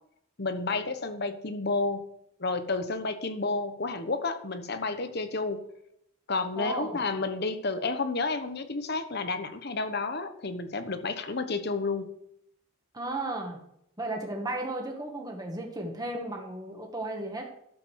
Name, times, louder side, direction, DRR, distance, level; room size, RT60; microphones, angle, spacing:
voice 1, 0.4-2.0 2.4-5.6 6.3-12.1, left 3 dB, 50° left, 9 dB, 1.0 m, -31 dB
voice 2, 6.5-7.0 12.9-13.6 14.0-17.5, right 2 dB, 20° right, 1 dB, 1.8 m, -34 dB
12.5 x 7.7 x 4.8 m, 0.75 s
head